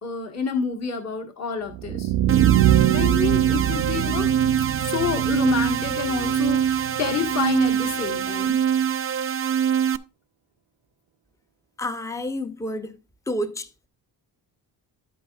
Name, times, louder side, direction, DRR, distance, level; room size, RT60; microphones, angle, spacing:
voice 1, 0.0-2.1 2.4-4.3 4.8-8.6, left 6 dB, 40° left, 1.5 m, -29 dB
sound 1, 1.7-7.7, right 12 dB, 90° right, 0.7 m, -24 dB
sound 2, 2.3-10.0, right 8 dB, 30° right, 0.4 m, -24 dB
sound 3, 2.6-8.5, left 3 dB, 65° left, 3.2 m, -47 dB
voice 2, 11.8-13.0 13.3-13.9, left 1 dB, 5° left, 0.7 m, -30 dB
9.8 x 8.6 x 2.4 m
cardioid pair, 90°, 43 cm